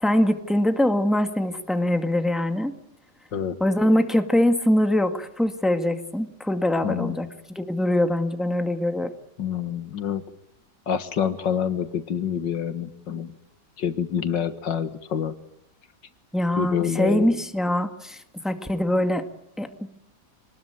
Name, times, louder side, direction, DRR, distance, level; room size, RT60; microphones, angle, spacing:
voice 1, 0.0-2.7 3.6-7.3 7.6-9.1 16.3-19.3 19.6-19.9, left 1 dB, ahead, 6 dB, 2.0 m, -23 dB
voice 2, 6.8-7.2 9.4-10.3 10.9-13.4 13.8-15.3 16.6-17.3, left 8 dB, 80° left, 10 dB, 2.2 m, -27 dB
27.0 x 20.5 x 9.2 m, 0.79 s
omnidirectional pair, 1.9 m